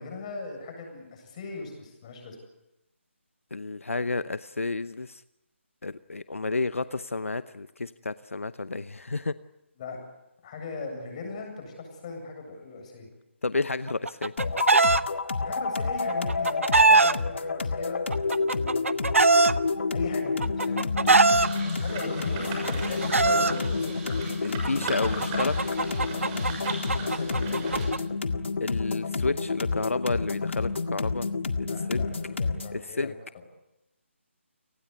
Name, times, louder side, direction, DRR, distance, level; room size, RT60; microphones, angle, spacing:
voice 1, 0.0-2.4 9.8-10.0 10.4-13.1 15.4-19.4 19.9-21.3 21.5-24.3 25.1-25.3 26.9-28.0 31.6-33.1, left 3 dB, 30° left, 4 dB, 7.9 m, -39 dB
voice 2, 3.5-5.2 5.8-9.3 13.4-14.3 24.4-25.5 28.6-31.3 31.9-32.1 32.7-33.1, left 3 dB, 85° left, 14 dB, 0.8 m, -31 dB
Chicken rooster, 13.9-15.0 16.1-17.1 18.1-19.5 20.4-21.5 22.5-23.5 24.6-28.0, right 3 dB, 80° right, 0.9 m, -21 dB
sound 1, 14.4-32.8, left 4 dB, 65° left, 1.9 m, -29 dB
sound 2, 21.0-27.8, right 3 dB, 20° right, 6.6 m, -38 dB
30.0 x 19.0 x 8.3 m, 0.93 s
figure-of-eight pair, 155°, 7 cm